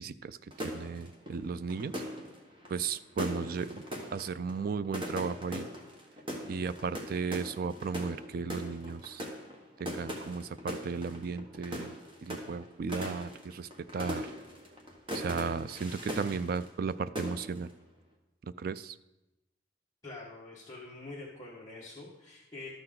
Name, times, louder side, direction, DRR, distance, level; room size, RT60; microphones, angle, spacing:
voice 1, 0.0-1.9 2.7-3.8 4.1-5.7 6.5-9.2 9.8-12.0 12.2-14.3 15.1-17.7 18.4-19.0, right 5 dB, 50° right, 15 dB, 0.3 m, -35 dB
sound 1, 0.5-16.9 17.2-17.7, equal, 25° right, 1.4 m, -40 dB
voice 2, 20.0-22.7, left 2 dB, 15° left, -7 dB, 1.4 m, -45 dB
12.5 x 6.6 x 3.9 m, 0.95 s
head